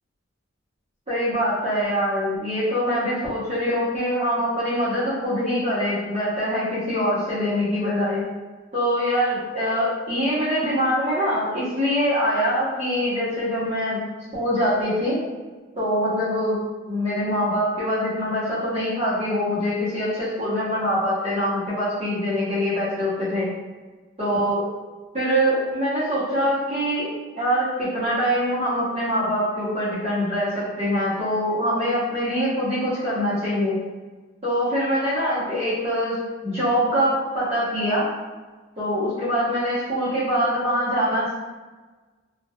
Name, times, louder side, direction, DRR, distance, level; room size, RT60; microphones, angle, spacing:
voice 1, 1.1-8.2 8.7-14.0 14.3-15.2 15.8-16.6 16.9-23.5 24.2-24.6 25.1-33.7 34.4-38.1 38.8-41.3, equal, 30° right, -11 dB, 0.8 m, -24 dB
2.8 x 2.2 x 2.2 m, 1.3 s
head